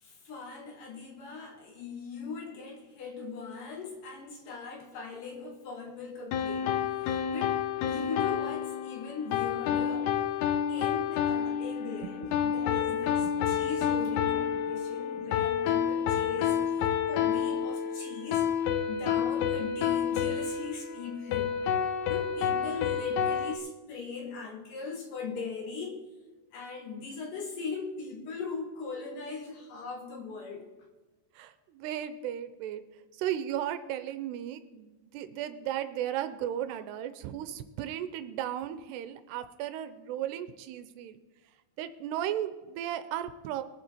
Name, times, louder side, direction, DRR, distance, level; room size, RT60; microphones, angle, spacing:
voice 1, 0.0-6.8 7.3-10.2 10.7-16.7 17.1-18.5 18.9-21.6 22.1-26.1 26.5-30.7, left 4 dB, 65° left, 2 dB, 2.6 m, -39 dB
sound 1, 6.3-23.6, left 8 dB, 80° left, 2.7 m, -29 dB
voice 2, 13.2-13.7 14.6-14.7 31.4-32.8 33.2-41.2 41.8-43.6, right 11 dB, 85° right, 11 dB, 2.7 m, -35 dB
22.5 x 7.5 x 4.2 m, 1.2 s
omnidirectional pair, 4.9 m